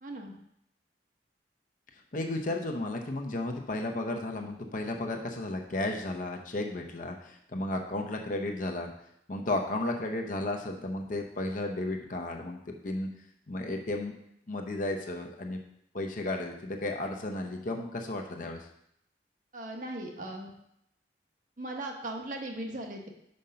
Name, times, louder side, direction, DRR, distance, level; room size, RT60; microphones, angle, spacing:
voice 1, 0.0-0.3 19.5-20.5 21.6-23.1, right 1 dB, 50° right, 2 dB, 1.0 m, -38 dB
voice 2, 2.1-8.9 9.3-12.6 12.8-13.1 13.5-14.1 14.5-15.6 15.9-18.6, left 2 dB, 50° left, 3 dB, 0.8 m, -33 dB
5.4 x 5.2 x 5.6 m, 0.76 s
head